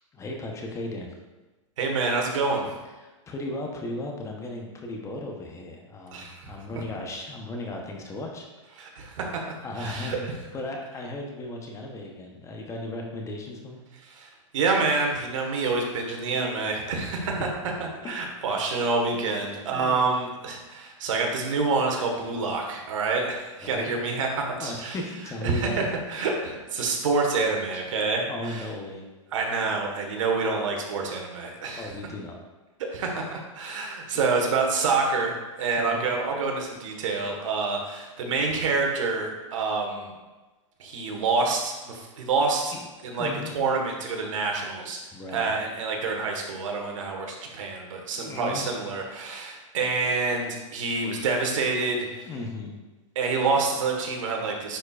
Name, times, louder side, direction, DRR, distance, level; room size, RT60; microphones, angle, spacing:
voice 1, 0.1-1.1 3.0-9.0 9.6-10.3 10.5-13.8 18.0-18.1 19.7-20.1 23.6-23.9 24.6-25.8 27.7-27.8 28.3-29.0 31.7-32.3 35.8-36.1 42.7-42.8 43.2-43.5 45.1-45.5 48.1-48.8 52.3-52.8, left 2 dB, 20° left, 1 dB, 0.8 m, -36 dB
voice 2, 1.8-2.7 6.1-6.5 8.8-10.3 14.1-17.5 18.0-25.0 25.4-28.6 29.3-31.9 32.9-40.1 40.8-42.7 43.0-45.0 45.3-52.3 53.1-54.8, right 4 dB, 70° right, 1 dB, 1.4 m, -27 dB
9.8 x 4.4 x 2.4 m, 1.2 s
hypercardioid pair, 135°, 17 cm